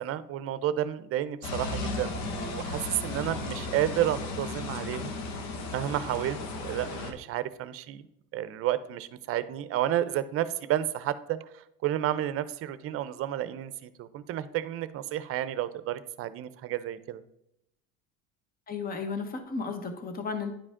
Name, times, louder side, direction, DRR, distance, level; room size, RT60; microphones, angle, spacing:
voice 1, 0.0-5.1 5.7-8.0 8.3-17.2, right 12 dB, 45° right, 14 dB, 0.6 m, -31 dB
sound 1, 1.4-7.1, left 3 dB, 65° left, 1.3 m, -35 dB
voice 2, 18.7-20.5, left 4 dB, 30° left, 7 dB, 1.2 m, -34 dB
10.0 x 4.9 x 3.7 m, 0.81 s
cardioid pair, 125°, 30 cm